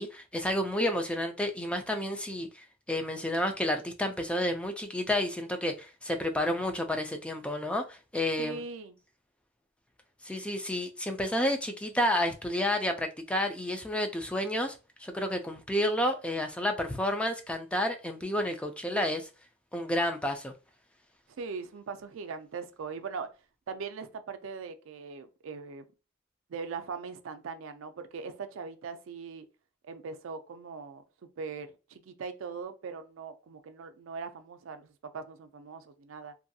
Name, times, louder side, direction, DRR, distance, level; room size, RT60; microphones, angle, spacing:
voice 1, 0.0-8.6 10.2-19.3 19.7-20.5, left 1 dB, 5° left, 0.3 m, -30 dB
voice 2, 8.4-9.0 21.4-23.3 23.7-25.8 26.5-29.5 29.8-31.0 31.4-36.3, right 5 dB, 85° right, 0.4 m, -40 dB
2.6 x 2.3 x 2.6 m
head